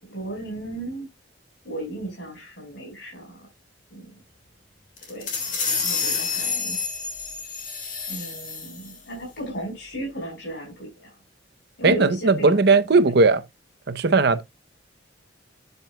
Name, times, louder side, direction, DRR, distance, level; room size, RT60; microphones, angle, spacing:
voice 1, 0.0-1.1 1.6-3.4 3.9-4.1 5.1-5.3 5.8-6.8 8.1-11.1 11.8-13.0, right 1 dB, 70° left, 4.8 m, -35 dB
sound 1, 5.0-9.0, left 5 dB, 45° left, 3.2 m, -28 dB
voice 2, 11.8-13.4 13.9-14.4, right 3 dB, 60° right, 0.7 m, -18 dB
9.4 x 9.2 x 2.2 m
head